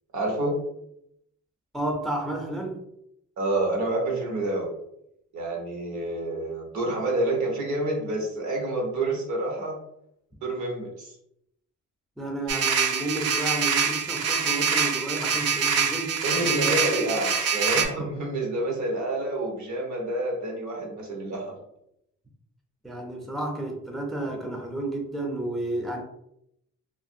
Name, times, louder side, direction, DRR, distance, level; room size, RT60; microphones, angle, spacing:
voice 1, 0.1-0.6 3.4-4.7 5.3-9.8 10.4-11.1 16.2-21.6, right 1 dB, 70° right, 0 dB, 1.0 m, -28 dB
voice 2, 1.7-2.8 12.2-16.7 22.8-26.0, right 1 dB, ahead, 1 dB, 0.4 m, -31 dB
sound 1, 12.5-17.9, right 6 dB, 55° right, 0.5 m, -25 dB
2.5 x 2.5 x 2.6 m, 0.77 s
cardioid pair, 90°, 30 cm